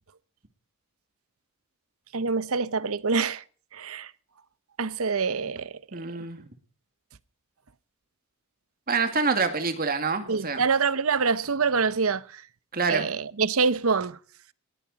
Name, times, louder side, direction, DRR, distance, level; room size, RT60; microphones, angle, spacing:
voice 1, 2.1-3.4 3.7-4.1 4.8-5.8 10.3-12.5 12.9-14.2, right 5 dB, 70° right, 0.9 m, -25 dB
voice 2, 5.9-6.4 8.9-10.6 12.7-13.1, right 4 dB, 40° right, 2.1 m, -26 dB
20.5 x 14.5 x 4.1 m
head